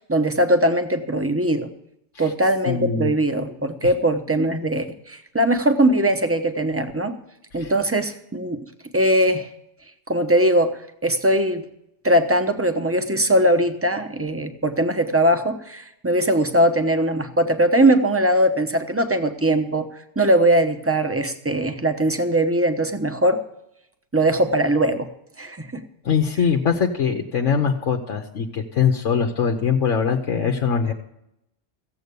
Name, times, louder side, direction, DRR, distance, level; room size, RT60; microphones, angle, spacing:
voice 1, 0.1-1.7 2.2-7.2 7.5-8.6 8.9-9.5 10.1-11.6 12.0-19.9 20.2-23.4 24.1-25.1 25.4-25.8, right 1 dB, 10° right, 7 dB, 0.9 m, -20 dB
voice 2, 2.7-3.1 3.8-3.9 7.6-7.7 26.0-30.9, left 6 dB, 80° left, 3 dB, 1.3 m, -22 dB
15.5 x 8.0 x 6.9 m, 0.81 s
omnidirectional pair, 1.3 m